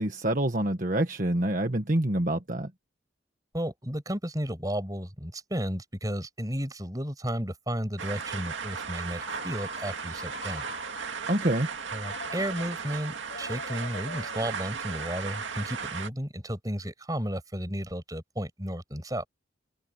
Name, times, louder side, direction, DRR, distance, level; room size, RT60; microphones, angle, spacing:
voice 1, 0.0-2.7 11.3-11.7, right 1 dB, 45° right, 1.5 m, -26 dB
voice 2, 3.5-10.7 11.9-19.3, equal, 20° right, 6.7 m, -33 dB
sound 1, 8.0-16.1, right 5 dB, 85° right, 2.3 m, -36 dB
Telephone, 9.1-11.2 12.0-15.0, left 3 dB, 70° left, 6.4 m, -45 dB
head